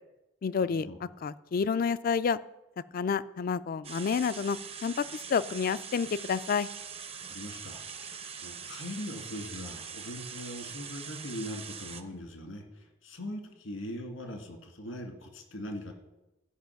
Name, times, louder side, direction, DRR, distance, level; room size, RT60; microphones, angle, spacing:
voice 1, 0.4-0.9 1.2-2.4 2.9-6.7, left 6 dB, 50° left, 16 dB, 0.3 m, -29 dB
sound 1, 3.8-12.0, right 7 dB, 30° right, 0.7 m, -43 dB
voice 2, 7.3-15.9, left 1 dB, 90° left, 4 dB, 1.9 m, -41 dB
13.0 x 5.5 x 5.8 m, 0.98 s
head